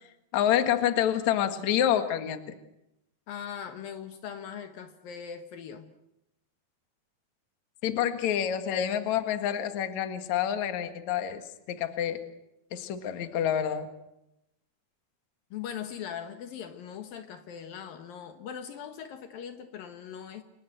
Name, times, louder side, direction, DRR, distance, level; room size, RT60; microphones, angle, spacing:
voice 1, 0.3-2.4 7.8-11.4 11.7-12.2 12.7-13.9, left 10 dB, 55° left, 8 dB, 2.8 m, -27 dB
voice 2, 3.3-5.9 15.5-20.4, left 8 dB, 70° left, 7 dB, 3.1 m, -40 dB
29.5 x 22.0 x 8.0 m, 0.87 s
omnidirectional pair, 4.4 m